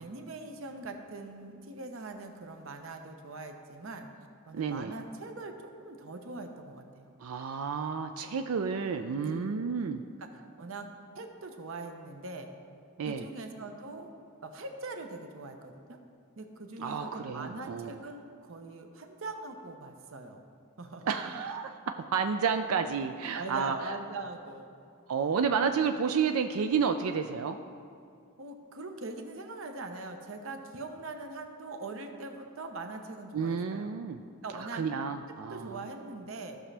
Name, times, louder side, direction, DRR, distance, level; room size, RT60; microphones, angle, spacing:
voice 1, 0.0-4.1 4.5-7.1 9.2-9.3 10.2-10.3 10.6-10.9 11.1-12.5 13.1-14.1 14.4-16.0 16.4-20.4 20.8-21.2 23.3-24.7 28.4-33.9 34.4-34.9 35.5-36.6, right 3 dB, 65° right, 5 dB, 0.8 m, -42 dB
voice 2, 4.5-4.9 7.2-10.0 13.0-13.2 16.8-18.0 21.1-23.7 25.1-27.6 33.3-34.2 34.6-35.8, right 6 dB, 80° right, 7 dB, 0.4 m, -31 dB
15.0 x 6.1 x 3.3 m, 2.4 s
head